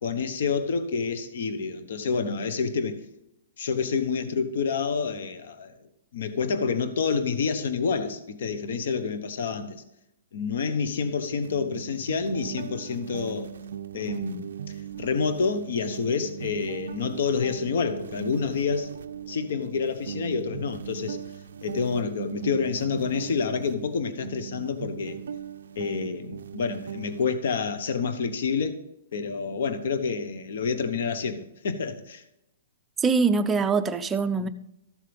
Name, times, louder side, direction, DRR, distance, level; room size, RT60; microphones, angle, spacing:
voice 1, 0.0-3.0 3.6-5.7 6.1-9.8 10.3-13.5 13.9-18.9 19.3-21.2 21.6-25.2 25.8-28.8 29.1-32.2, left 5 dB, 60° left, 1.1 m, -28 dB
sound 1, 11.4-27.2, right 8 dB, 85° right, 0.5 m, -39 dB
voice 2, 33.0-34.5, right 4 dB, 10° right, 0.5 m, -23 dB
14.0 x 7.4 x 3.5 m
hypercardioid pair, 170°, 0 cm